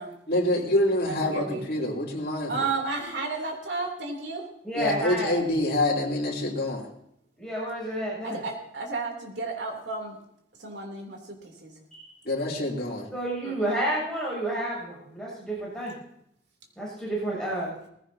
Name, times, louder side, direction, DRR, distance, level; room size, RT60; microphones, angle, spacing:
voice 1, 0.3-2.5 4.8-6.9 12.2-13.1, left 1 dB, 55° left, -3 dB, 3.0 m, -26 dB
voice 2, 1.0-1.6 2.5-4.5 8.2-10.2 10.6-11.7 13.4-13.8, right 3 dB, 75° right, 1 dB, 3.0 m, -33 dB
voice 3, 4.6-5.4 7.4-8.4 11.9-12.1 13.1-15.9 16.8-17.7, right 1 dB, 5° left, -6 dB, 7.0 m, -30 dB
19.0 x 15.5 x 2.8 m, 0.73 s
head